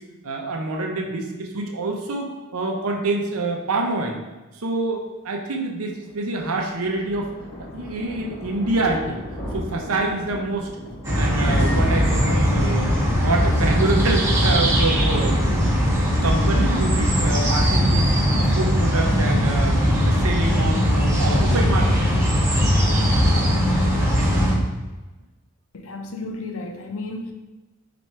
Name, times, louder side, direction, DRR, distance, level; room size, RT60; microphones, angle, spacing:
voice 1, 0.2-4.2 4.5-7.3 7.7-9.2 9.5-10.7 11.1-12.9 13.2-15.4 16.1-18.0 18.4-22.3, right 2 dB, 85° right, 1 dB, 0.7 m, -26 dB
Thunder, 6.0-15.4 15.7-16.0 16.3-16.4 16.6-16.7, equal, 30° left, 1.1 m, -35 dB
sound 1, 11.0-24.5, equal, 15° right, 1.2 m, -19 dB
voice 2, 25.7-27.3, left 2 dB, 70° left, 4 dB, 0.6 m, -33 dB
4.5 x 2.6 x 4.2 m, 1.1 s
head